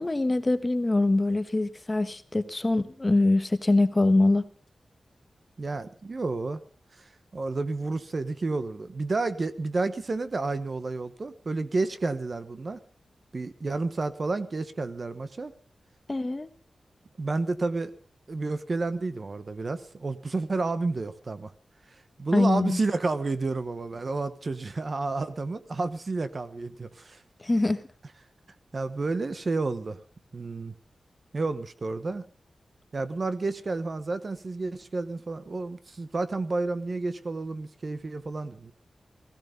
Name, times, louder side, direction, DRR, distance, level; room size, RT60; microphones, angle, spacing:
voice 1, 0.0-4.5 16.1-16.5 22.3-22.8 27.4-27.8, left 2 dB, 20° left, 10 dB, 1.2 m, -23 dB
voice 2, 5.6-6.6 7.0-12.8 13.3-15.5 17.2-17.9 18.3-21.5 21.9-27.2 28.7-30.0 30.3-30.7 31.3-32.3 32.9-38.7, right 3 dB, 40° right, 12 dB, 1.1 m, -30 dB
16.5 x 16.0 x 5.2 m, 0.41 s
wide cardioid pair, 130°, 0 cm